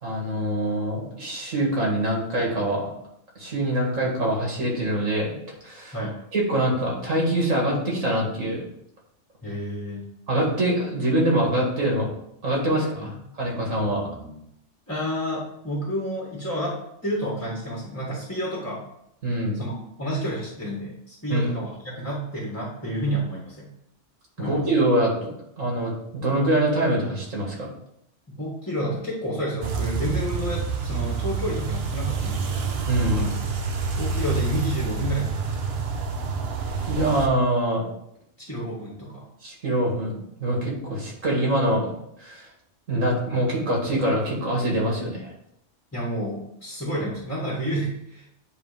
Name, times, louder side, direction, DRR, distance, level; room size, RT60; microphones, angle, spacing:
voice 1, 0.0-2.9 3.4-5.4 5.6-6.0 6.3-8.6 10.3-12.1 12.4-14.4 19.2-19.6 21.3-21.5 24.4-25.3 25.6-27.7 32.9-33.2 36.9-37.9 39.4-41.9 42.2-42.4 42.9-45.3, right 1 dB, 80° right, -2 dB, 2.6 m, -24 dB
voice 2, 9.4-10.1 13.0-13.1 14.9-18.8 19.5-23.7 24.4-24.6 28.3-32.7 33.0-33.3 34.0-35.7 38.4-39.2 45.9-48.3, equal, 10° left, -3 dB, 1.3 m, -30 dB
sound 1, 29.6-37.3, right 4 dB, 55° right, 1.0 m, -28 dB
9.8 x 3.4 x 4.9 m, 0.77 s
omnidirectional pair, 1.3 m